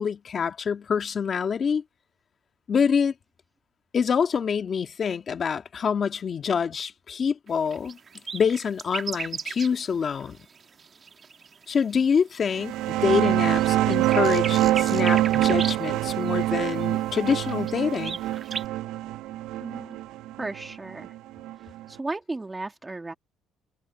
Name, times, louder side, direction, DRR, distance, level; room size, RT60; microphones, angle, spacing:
voice 1, 0.0-1.8 2.7-3.1 3.9-8.0 8.3-10.4 11.7-18.2, left 6 dB, 40° left, 1.8 m, -26 dB
sound 1, 7.5-12.5 13.0-18.7, right 6 dB, 35° right, 1.5 m, -37 dB
sound 2, 12.5-21.9, right 15 dB, 80° right, 0.5 m, -25 dB
voice 2, 19.6-20.0 20.4-21.2 21.6-23.1, right 2 dB, 15° right, 2.3 m, -35 dB
cardioid pair, 110°, 0 cm